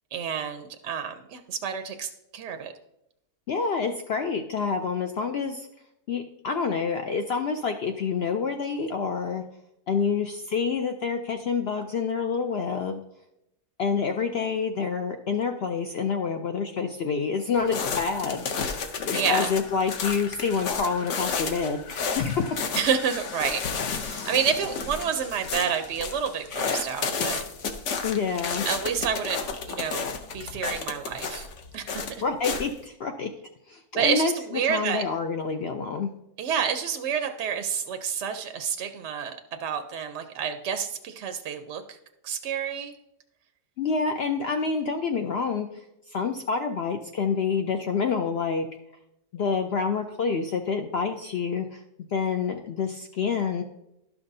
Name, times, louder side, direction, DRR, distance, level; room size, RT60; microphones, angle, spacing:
voice 1, 0.1-2.7 19.1-19.5 22.7-27.4 28.7-30.1 30.3-31.5 31.7-32.0 34.0-35.0 36.4-42.0 42.2-42.9, right 7 dB, 65° right, 7 dB, 0.7 m, -29 dB
voice 2, 3.5-5.7 6.1-9.4 9.9-13.0 13.8-22.7 28.0-28.7 32.2-33.3 33.7-34.3 34.7-36.1 43.8-45.8 46.1-48.7 49.3-51.8 52.1-53.6, left 5 dB, 85° left, 5 dB, 0.5 m, -27 dB
sound 1, 17.6-32.8, left 5 dB, 60° left, 0.9 m, -32 dB
12.0 x 6.0 x 2.6 m, 0.84 s
omnidirectional pair, 1.6 m